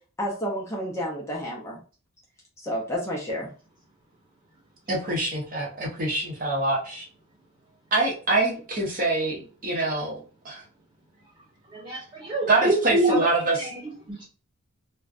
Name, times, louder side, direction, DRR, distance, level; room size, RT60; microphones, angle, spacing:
voice 1, 0.2-1.8 2.6-3.5, equal, 15° left, -3 dB, 0.5 m, -30 dB
voice 2, 4.9-7.1 7.9-10.2 10.4-10.6 11.9-12.0 12.5-13.7, right 2 dB, 40° right, -3 dB, 0.7 m, -25 dB
voice 3, 11.7-13.2 13.6-13.7 14.1-14.2, right 2 dB, 20° right, -3 dB, 1.1 m, -25 dB
2.5 x 2.1 x 2.3 m, 0.37 s
head